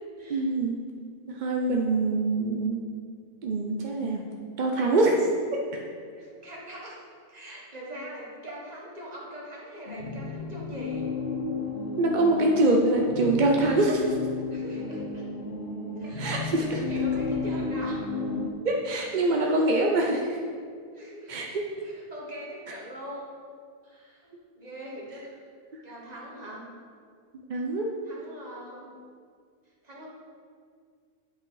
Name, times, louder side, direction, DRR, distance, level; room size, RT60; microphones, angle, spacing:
voice 1, 0.3-0.7 1.4-2.8 3.4-4.2 4.6-5.2 5.7-5.8 12.0-14.1 16.2-16.8 18.6-20.3 21.3-21.6 27.5-27.9, right 2 dB, 60° right, 0 dB, 0.5 m, -24 dB
voice 2, 6.2-7.0 7.3-11.1 14.5-15.3 16.0-18.0 19.0-19.7 20.9-21.3 21.8-23.3 23.8-25.4 25.8-26.7 28.0-28.9 29.8-30.1, equal, 25° right, -5 dB, 1.6 m, -42 dB
sound 1, 9.9-18.5, left 4 dB, 60° left, 0.6 m, -32 dB
9.9 x 5.4 x 3.9 m, 2.1 s
omnidirectional pair, 1.6 m